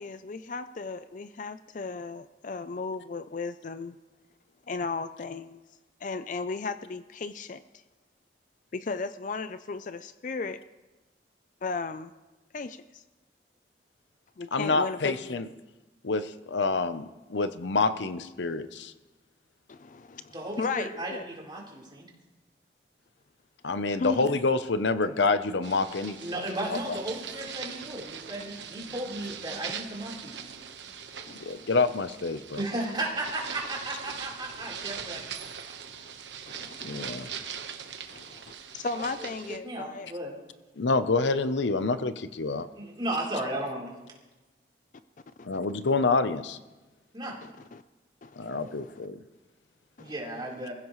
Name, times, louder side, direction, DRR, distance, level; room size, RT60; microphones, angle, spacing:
voice 1, 0.0-4.0 4.7-5.6 6.0-7.6 8.7-10.6 11.6-12.1 12.5-13.0 14.4-15.4 19.7-21.2 24.0-24.3 31.3-31.7 36.5-37.6 38.1-38.4 38.7-40.1 45.4-45.5 47.4-47.8 48.2-49.0 50.0-50.1, left 4 dB, 45° left, 11 dB, 0.5 m, -36 dB
voice 2, 14.5-15.5 16.0-18.9 23.6-26.2 31.4-32.6 36.8-37.3 40.8-42.7 45.4-46.6 48.4-49.2, left 3 dB, 85° left, 11 dB, 0.8 m, -27 dB
voice 3, 20.3-22.1 26.2-30.5 32.5-35.2 38.9-39.1 39.6-40.3 42.8-43.9 47.1-47.4 50.0-50.7, right 1 dB, 25° right, -3 dB, 3.8 m, -34 dB
sound 1, 25.6-39.6, right 7 dB, 85° right, 1.2 m, -41 dB
26.0 x 15.5 x 3.2 m, 1.1 s
head